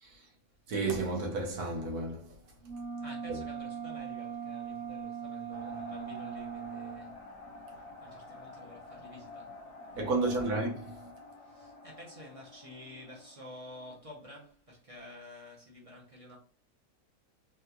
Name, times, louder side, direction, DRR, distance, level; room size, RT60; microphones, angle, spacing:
voice 1, 0.7-2.4 3.3-3.4 10.0-11.1, right 3 dB, 80° right, 1.4 m, -32 dB
sound 1, 2.6-7.1, right 7 dB, 65° right, 1.4 m, -40 dB
voice 2, 3.0-7.2 7.7-9.5 9.9-10.6 11.4-16.4, left 1 dB, 35° right, 0.6 m, -50 dB
sound 2, 5.5-14.5, left 2 dB, 60° left, 0.9 m, -50 dB
3.5 x 2.4 x 2.8 m
omnidirectional pair, 1.6 m